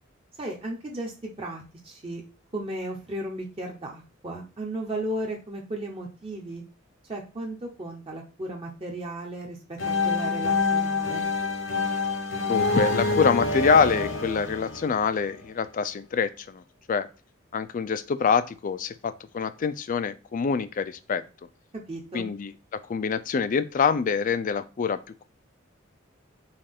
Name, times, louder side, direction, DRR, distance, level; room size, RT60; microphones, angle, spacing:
voice 1, 0.3-2.2 2.5-6.6 7.1-9.8 10.0-11.3 21.9-22.3, right 1 dB, 30° right, 0 dB, 0.7 m, -35 dB
sound 1, 9.8-15.5, left 3 dB, 70° left, 1.0 m, -27 dB
voice 2, 12.5-16.6 16.9-17.1 17.5-21.2 22.1-25.0, left 6 dB, 40° left, 13 dB, 0.3 m, -25 dB
5.5 x 2.4 x 3.5 m, 0.34 s
head